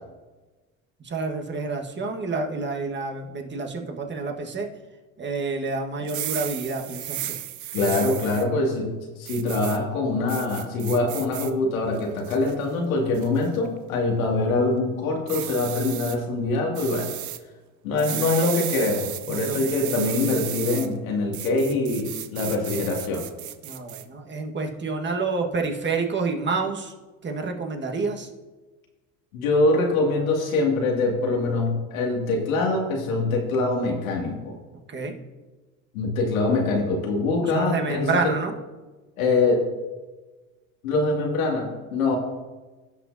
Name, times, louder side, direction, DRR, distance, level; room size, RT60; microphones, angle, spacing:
voice 1, 1.0-4.7 5.2-7.4 19.3-20.1 23.6-26.9 27.2-28.3 34.9-35.2 37.4-38.5, right 4 dB, 25° right, 2 dB, 1.5 m, -29 dB
sound 1, 6.0-8.4 9.3-9.8 10.3-11.5 12.0-12.5 13.1-13.5 15.3-16.2 16.7-17.4 18.0-20.9 21.3-24.0, right 13 dB, 45° right, 0.8 m, -34 dB
voice 2, 7.7-17.1 17.8-23.3 29.3-34.6 35.9-38.1 39.2-39.7 40.8-42.2, left 2 dB, 85° left, 0 dB, 2.4 m, -24 dB
16.5 x 6.0 x 2.7 m, 1.2 s
hypercardioid pair, 80°, 40 cm